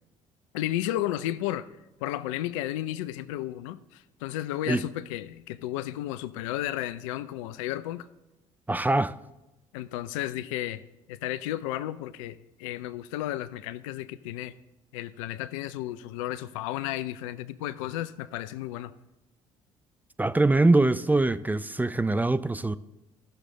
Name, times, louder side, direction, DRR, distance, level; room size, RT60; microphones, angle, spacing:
voice 1, 0.5-1.7 2.0-8.1 9.7-10.8 11.1-14.5 14.9-18.9, left 14 dB, 75° left, 0.5 m, -33 dB
voice 2, 8.7-9.1 20.2-22.8, right 2 dB, 10° right, 0.4 m, -23 dB
15.0 x 6.5 x 3.7 m
hypercardioid pair, 55°, 17 cm